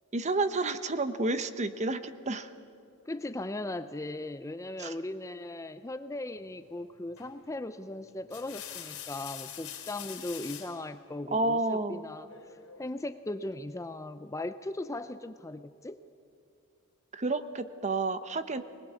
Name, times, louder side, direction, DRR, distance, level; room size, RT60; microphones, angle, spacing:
voice 1, 0.1-2.5 4.8-4.9 11.3-12.0 17.1-18.6, right 2 dB, 30° right, 12 dB, 0.8 m, -30 dB
voice 2, 3.1-12.3 12.8-16.0, left 2 dB, 15° left, 11 dB, 0.5 m, -38 dB
sound 1, 7.2-7.5 8.1-10.8 12.3-12.9, left 10 dB, 85° left, 3.4 m, -44 dB
23.0 x 20.0 x 8.4 m, 2.5 s
head